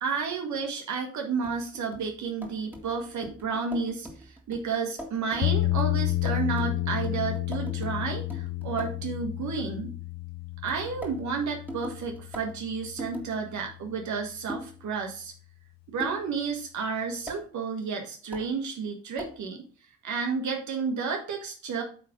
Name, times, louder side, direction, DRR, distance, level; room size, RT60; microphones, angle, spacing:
voice 1, 0.0-9.9 10.6-15.3 15.9-19.6 20.0-21.8, right 5 dB, 70° right, 3 dB, 1.5 m, -31 dB
sound 1, 1.4-9.1 10.7-13.3 14.5-14.8 16.0-16.3 17.3-17.4 18.3-18.5 19.2-19.4, equal, 5° right, 2.0 m, -43 dB
sound 2, 5.4-13.5, left 17 dB, 60° left, 0.6 m, -31 dB
8.6 x 3.6 x 5.1 m, 0.41 s
cardioid pair, 90°, 30 cm